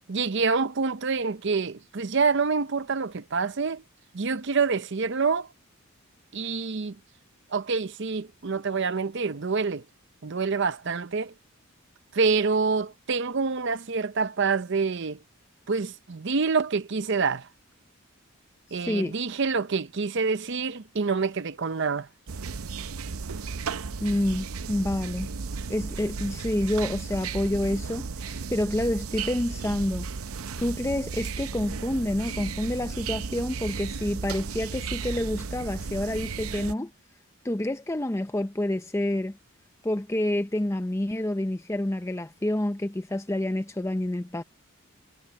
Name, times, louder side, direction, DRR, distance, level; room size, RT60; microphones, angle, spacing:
voice 1, 0.1-3.8 4.1-5.5 6.3-7.0 7.5-9.8 10.2-11.3 12.1-15.2 15.7-17.5 18.7-22.1, right 4 dB, 55° right, 0.7 m, -26 dB
voice 2, 18.7-19.1 24.0-25.3 25.7-30.1 30.6-36.9 37.4-39.4 39.8-44.4, left 1 dB, 15° left, 0.5 m, -28 dB
sound 1, 22.3-36.7, right 5 dB, 90° right, 0.7 m, -34 dB
head